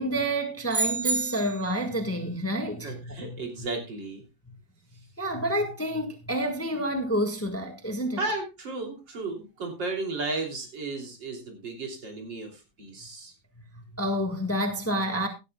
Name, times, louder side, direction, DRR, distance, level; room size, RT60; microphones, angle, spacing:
voice 1, 0.0-3.4 5.2-8.2 13.7-15.3, right 1 dB, 10° left, 1.5 m, -29 dB
sound 1, 0.7-1.8, right 3 dB, 25° right, 1.5 m, -29 dB
voice 2, 2.8-4.2 8.2-13.3, right 3 dB, 70° right, 3.9 m, -34 dB
16.5 x 12.5 x 2.3 m
omnidirectional pair, 2.0 m